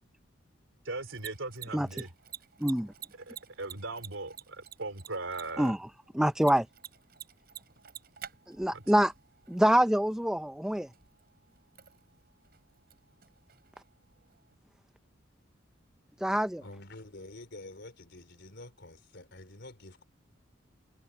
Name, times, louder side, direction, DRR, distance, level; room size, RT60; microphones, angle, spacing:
Mechanisms, 0.9-14.5, right 10 dB, 55° right, 7.6 m, -51 dB
voice 1, 0.9-2.1 3.3-5.7 8.7-8.8, right 2 dB, 80° right, 3.5 m, -39 dB
voice 2, 2.6-2.9 5.6-5.8 6.1-6.7 8.5-9.1 9.5-10.9 16.2-16.6, equal, 5° right, 0.5 m, -25 dB
voice 3, 16.6-20.0, left 2 dB, 60° left, 4.1 m, -48 dB
head